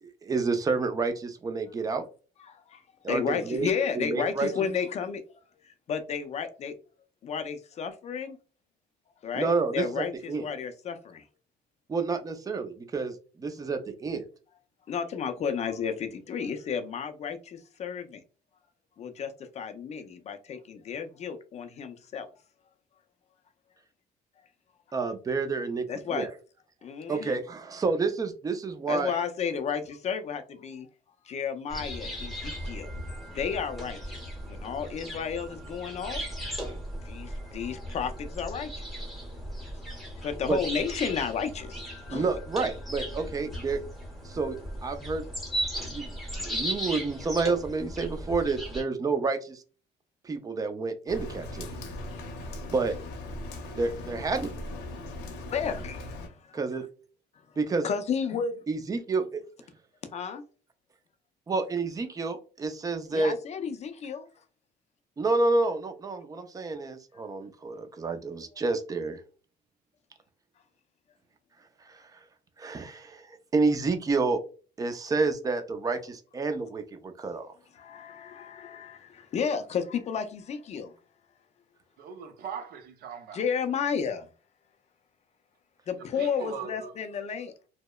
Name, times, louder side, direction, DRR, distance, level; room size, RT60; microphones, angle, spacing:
voice 1, 0.0-2.1 3.0-3.7 4.0-4.7 9.3-10.4 11.9-14.2 24.9-26.3 27.1-29.1 40.5-40.6 42.1-43.8 44.2-44.6 44.8-45.2 45.9-46.1 46.4-49.6 50.2-51.7 52.7-52.9 53.8-54.5 56.5-56.8 57.6-57.8 58.7-59.4 61.5-63.4 65.2-69.2 71.9-72.0 72.6-74.4 74.8-77.5, right 3 dB, 20° right, 0.4 m, -29 dB
voice 2, 2.4-2.8 3.1-5.2 5.6-6.7 7.2-8.4 9.2-11.3 14.9-18.2 19.0-22.3 25.9-26.3 26.8-27.4 28.9-30.9 31.2-34.2 34.5-36.3 37.0-38.9 40.2-42.3 55.5-56.6 57.5-57.6 57.8-58.6 60.1-60.4 63.1-64.3 77.7-80.9 83.3-84.3 85.9-87.7, left 6 dB, 40° left, 0.4 m, -32 dB
sound 1, 31.7-48.8, equal, ahead, 0.9 m, -37 dB
Rain, 51.1-56.3, left 1 dB, 90° left, 0.6 m, -39 dB
voice 3, 82.0-83.4 86.0-86.9, right 7 dB, 65° right, 0.6 m, -40 dB
2.8 x 2.0 x 2.2 m
cardioid pair, 110°, 17 cm